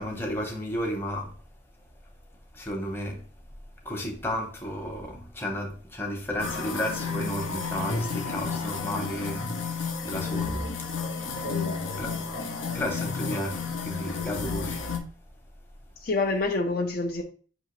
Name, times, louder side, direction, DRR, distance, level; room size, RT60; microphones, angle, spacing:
voice 1, 0.0-1.3 2.5-3.2 3.8-10.5 12.0-12.1 12.7-14.9, equal, 10° left, 0.8 m, -33 dB
sound 1, 6.4-15.0, left 4 dB, 80° left, 0.7 m, -32 dB
voice 2, 11.4-11.8 16.0-17.2, left 3 dB, 45° left, 0.4 m, -27 dB
5.9 x 2.7 x 3.0 m
head